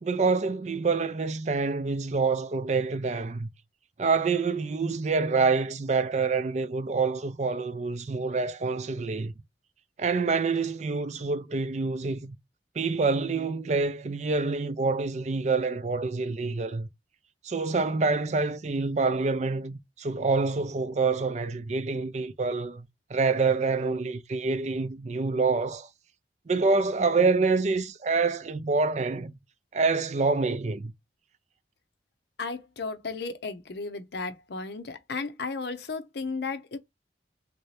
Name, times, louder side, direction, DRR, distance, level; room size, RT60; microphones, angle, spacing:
voice 1, 0.0-3.5 4.0-9.3 10.0-12.4 12.8-16.9 17.4-25.9 26.5-29.4 29.7-30.9, right 4 dB, 40° right, 0.4 m, -27 dB
voice 2, 32.4-36.8, left 4 dB, 65° left, 0.6 m, -34 dB
3.3 x 2.7 x 3.2 m
head